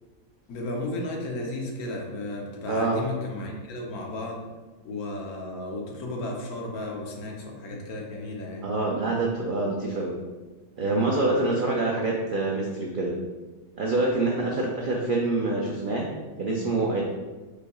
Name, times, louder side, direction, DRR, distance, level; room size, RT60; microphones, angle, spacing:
voice 1, 0.5-4.4 4.8-8.7, left 2 dB, 80° left, 0 dB, 1.3 m, -34 dB
voice 2, 2.7-3.0 7.7-7.8 8.6-10.1 10.8-13.1 13.8-16.1 16.4-17.0, right 2 dB, 70° right, -2 dB, 0.4 m, -26 dB
5.1 x 4.3 x 2.3 m, 1.3 s
omnidirectional pair, 1.5 m